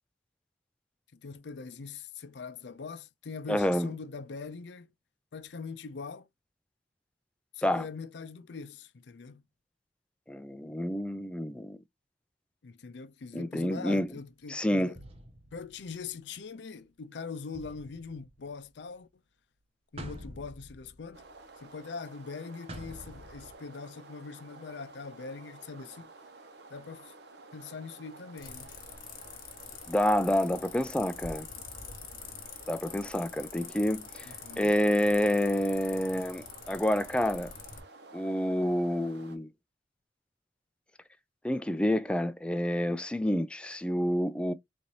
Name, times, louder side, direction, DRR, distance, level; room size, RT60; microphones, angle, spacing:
voice 1, 1.1-4.9 5.3-6.3 7.5-9.4 12.6-15.0 15.5-19.1 19.9-21.2 21.6-26.1 26.7-27.1 27.5-28.7 34.3-34.7, left 5 dB, 70° left, 0.5 m, -42 dB
voice 2, 3.5-3.9 7.6-7.9 10.3-11.8 13.3-14.1 14.5-14.9 29.9-31.5 32.7-34.3 34.6-37.5 38.1-39.5 41.4-44.5, equal, 5° left, 0.3 m, -28 dB
sound 1, 15.0-16.3 17.5-18.9 20.0-21.5 22.7-23.5, equal, 35° right, 0.7 m, -47 dB
sound 2, 21.1-39.4, right 3 dB, 65° right, 0.9 m, -52 dB
sound 3, 28.4-37.8, left 7 dB, 55° left, 0.9 m, -46 dB
4.1 x 2.6 x 3.1 m
head